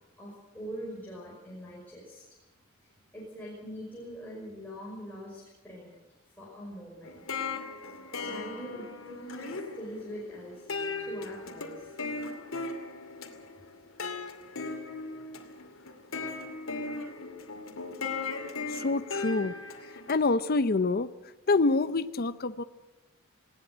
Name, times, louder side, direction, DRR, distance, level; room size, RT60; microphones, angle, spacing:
voice 1, 0.2-2.2 3.1-5.9 6.4-7.2 8.2-10.7 11.0-11.9, equal, 10° left, -6 dB, 5.6 m, -43 dB
sound 1, 7.0-20.2, left 3 dB, 70° left, 2.5 m, -38 dB
voice 2, 18.7-19.5 20.1-21.1 21.5-22.6, left 3 dB, 45° left, 12 dB, 0.6 m, -26 dB
20.0 x 17.5 x 7.9 m, 1.0 s
head